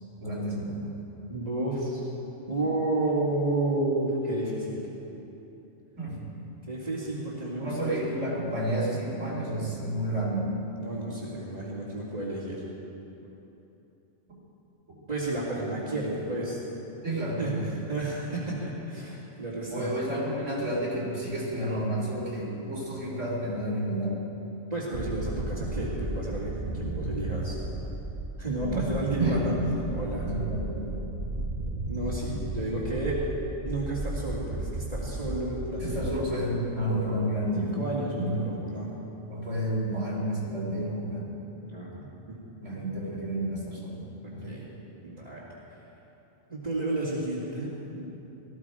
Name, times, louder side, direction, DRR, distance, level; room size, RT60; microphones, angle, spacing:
voice 1, 0.2-0.9 6.0-6.2 7.6-10.6 14.9-15.0 17.0-17.8 19.7-24.2 28.6-28.9 29.2-29.6 30.2-31.0 35.8-37.8 38.1-38.6 39.3-41.3 42.6-44.5, right 1 dB, 80° right, -4 dB, 3.7 m, -30 dB
voice 2, 1.3-2.0 2.5-4.9 6.7-7.9 10.8-12.6 15.1-16.6 17.4-19.9 24.7-27.8 28.4-29.5 29.9-30.3 31.9-33.2 33.6-36.2 37.6-38.9 41.7-42.4 44.4-44.6 45.0-45.4 46.5-48.0, right 2 dB, 30° right, -10 dB, 2.5 m, -31 dB
sound 1, 24.9-36.2, right 2 dB, 50° right, 1.2 m, -34 dB
19.0 x 14.0 x 4.9 m, 3.0 s
omnidirectional pair, 1.3 m